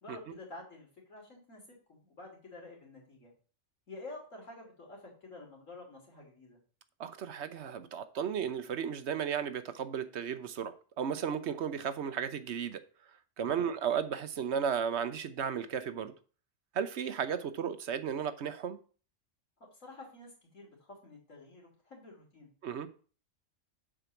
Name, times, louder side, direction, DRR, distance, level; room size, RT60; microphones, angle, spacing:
voice 1, 0.0-3.3 3.9-6.6 13.4-13.7 19.7-22.5, left 2 dB, 80° left, 3.4 m, -50 dB
voice 2, 7.0-12.8 13.4-16.1 16.7-18.8 22.6-22.9, right 7 dB, 65° right, 0.9 m, -34 dB
7.4 x 4.6 x 6.9 m
omnidirectional pair, 1.3 m